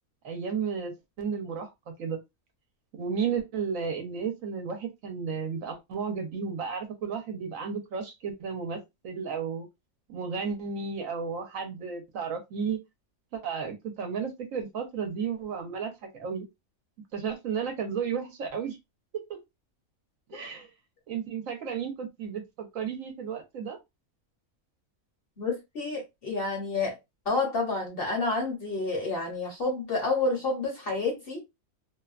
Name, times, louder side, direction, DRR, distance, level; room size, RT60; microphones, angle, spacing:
voice 1, 0.2-2.2 2.9-9.7 10.1-12.8 13.3-16.5 17.1-18.8 19.3-19.4 20.3-20.7 21.1-23.8, right 6 dB, 70° right, 1.0 m, -33 dB
voice 2, 25.4-27.0 27.2-31.4, left 3 dB, 50° left, 0.9 m, -29 dB
2.7 x 2.1 x 2.4 m
omnidirectional pair, 1.5 m